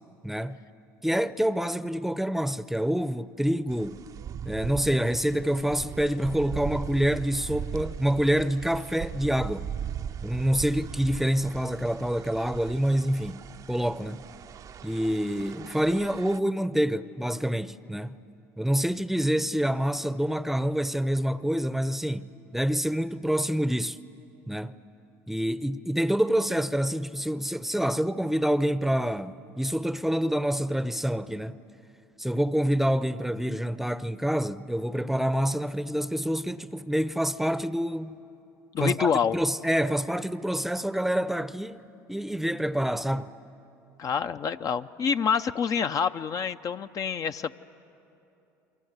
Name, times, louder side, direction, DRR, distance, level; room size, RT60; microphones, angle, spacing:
voice 1, 0.2-0.6 1.0-4.0 4.5-9.7 10.2-14.2 14.8-18.2 18.6-24.0 24.5-24.8 25.3-31.6 32.2-38.2 38.8-41.8 42.1-43.3, equal, 5° right, 0.7 m, -27 dB
sound 1, 3.7-16.4, right 8 dB, 45° right, 0.6 m, -39 dB
voice 2, 38.7-39.4 44.0-47.6, left 7 dB, 45° left, 0.6 m, -27 dB
28.5 x 23.5 x 8.1 m
hypercardioid pair, 75°, 8 cm